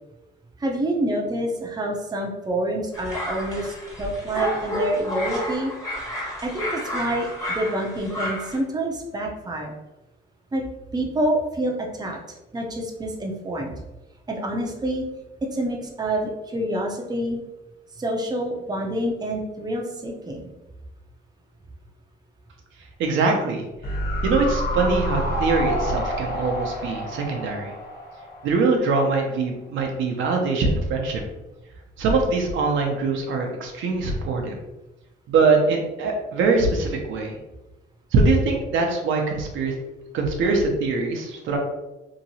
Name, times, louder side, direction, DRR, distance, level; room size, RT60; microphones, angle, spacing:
voice 1, 0.6-5.7 6.4-9.7 10.5-10.6 10.9-12.2 12.5-13.7 14.3-15.0 15.5-17.4 18.0-20.4, right 1 dB, 20° right, 0 dB, 0.6 m, -27 dB
sound 1, 2.9-8.6, equal, 15° left, 1.2 m, -30 dB
voice 2, 23.0-23.6 24.2-27.7 28.4-31.2 32.0-34.6 35.3-37.4 38.1-39.7 40.1-41.6, right 3 dB, 80° right, 1 dB, 0.6 m, -22 dB
sound 2, 23.8-29.1 29.4-29.5, equal, 50° left, 1.0 m, -28 dB
2.9 x 2.7 x 2.7 m, 1.0 s
cardioid pair, 90°, 20 cm